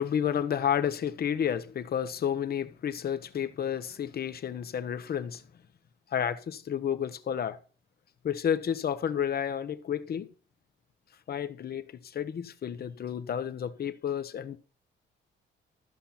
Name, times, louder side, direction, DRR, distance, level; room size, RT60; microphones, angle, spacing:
voice 1, 0.0-5.4 6.1-7.6 8.2-10.3 11.3-14.6, left 8 dB, 50° left, 0.9 m, -31 dB
14.0 x 5.7 x 4.2 m
cardioid pair, 90°, 20 cm